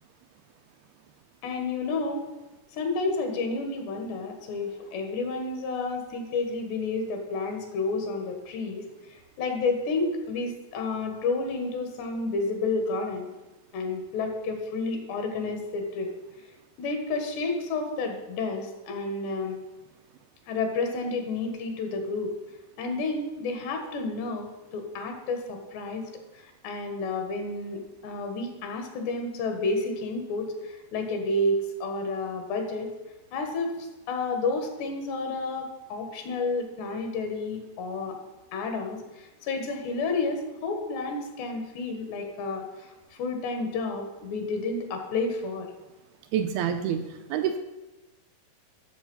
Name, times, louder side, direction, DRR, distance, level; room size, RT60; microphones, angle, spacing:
voice 1, 1.4-2.3 2.7-13.3 13.7-16.1 16.8-19.6 20.5-22.4 22.8-32.9 33.3-38.2 38.5-45.7, left 3 dB, 80° left, 4 dB, 3.8 m, -30 dB
voice 2, 46.3-47.6, right 8 dB, 85° right, 6 dB, 2.3 m, -27 dB
13.0 x 7.1 x 5.5 m, 1.1 s
omnidirectional pair, 4.8 m